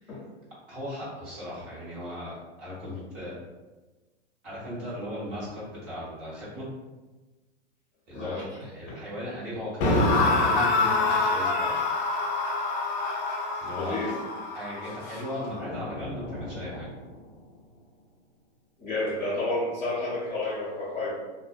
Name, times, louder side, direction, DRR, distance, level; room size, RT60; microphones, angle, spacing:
voice 1, 0.7-3.4 4.4-6.7 8.1-11.7 13.6-14.1 14.5-16.9, left 1 dB, 30° right, -8 dB, 1.2 m, -37 dB
voice 2, 8.1-8.4 13.8-14.1 15.0-15.2 18.8-21.1, left 2 dB, 5° left, -17 dB, 0.7 m, -30 dB
sound 1, 9.8-16.9, left 2 dB, 50° left, 0.5 m, -27 dB
2.6 x 2.1 x 2.4 m, 1.2 s
supercardioid pair, 155°, 35 cm